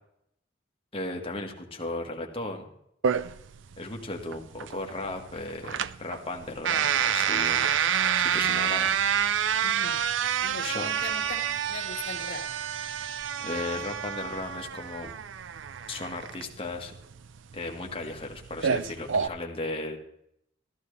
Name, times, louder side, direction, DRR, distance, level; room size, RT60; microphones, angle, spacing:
voice 1, 0.9-2.6 3.8-7.6 8.2-8.9 10.6-10.9 13.4-15.1 15.9-16.9 17.5-20.0, left 2 dB, 30° left, 1 dB, 1.6 m, -35 dB
sound 1, 3.0-19.3, right 8 dB, 75° right, 0.4 m, -28 dB
voice 2, 9.6-10.1 10.4-12.5, left 4 dB, 70° left, 2 dB, 1.8 m, -40 dB
14.0 x 12.5 x 3.3 m, 0.74 s
head